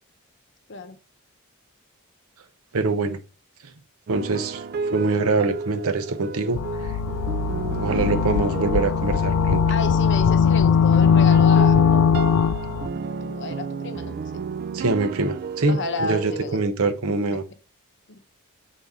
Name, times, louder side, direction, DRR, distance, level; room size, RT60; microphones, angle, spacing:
voice 1, 2.7-3.2 4.1-7.0 7.8-9.6 14.7-17.4, right 3 dB, 75° right, 0.8 m, -24 dB
sound 1, 4.1-16.7, right 5 dB, 45° right, 0.3 m, -33 dB
sound 2, 6.6-12.9, left 6 dB, 90° left, 0.4 m, -19 dB
voice 2, 9.7-11.8 13.2-14.2 15.7-16.6 17.1-17.4 18.1-18.2, left 3 dB, 55° left, 0.8 m, -31 dB
7.4 x 4.0 x 3.5 m
head